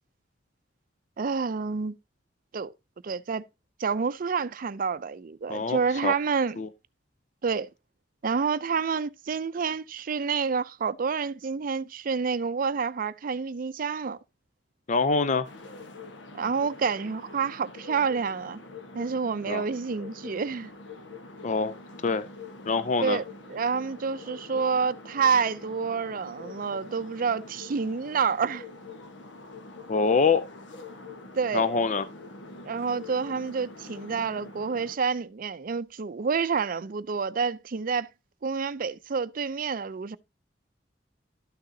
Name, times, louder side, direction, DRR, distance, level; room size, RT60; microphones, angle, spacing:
voice 1, 1.2-2.0 2.5-2.7 3.0-3.4 3.8-6.6 7.4-7.7 8.2-14.2 16.3-18.6 18.9-20.7 23.0-23.2 23.5-28.6 31.3-31.9 32.6-38.1 38.4-40.2, right 5 dB, 50° right, 0.5 m, -28 dB
voice 2, 5.5-6.1 6.6-6.7 14.9-15.5 19.5-19.6 21.4-21.7 22.0-22.3 22.7-23.2 29.9-30.4 31.5-32.1, left 4 dB, 40° left, 0.5 m, -25 dB
sound 1, 15.4-35.0, left 3 dB, 80° left, 1.2 m, -45 dB
12.5 x 6.5 x 2.7 m
head